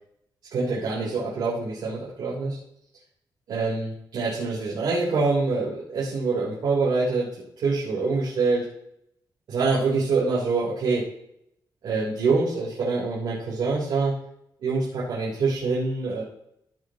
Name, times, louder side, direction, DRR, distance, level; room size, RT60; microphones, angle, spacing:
voice 1, 0.5-2.6 3.5-8.7 9.5-11.1 11.8-14.2 14.6-16.2, right 4 dB, 80° right, -7 dB, 4.0 m, -25 dB
16.0 x 7.8 x 3.1 m, 0.76 s
wide cardioid pair, 160°, 8 cm